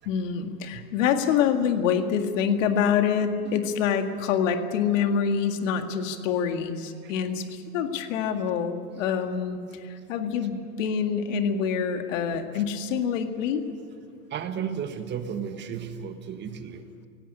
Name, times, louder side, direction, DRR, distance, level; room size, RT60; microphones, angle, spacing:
voice 1, 0.1-13.6, left 7 dB, 60° left, 6 dB, 2.1 m, -26 dB
voice 2, 14.3-17.1, right 7 dB, 25° right, 8 dB, 1.5 m, -34 dB
18.0 x 17.5 x 9.9 m, 2.2 s
hypercardioid pair, 130°, 44 cm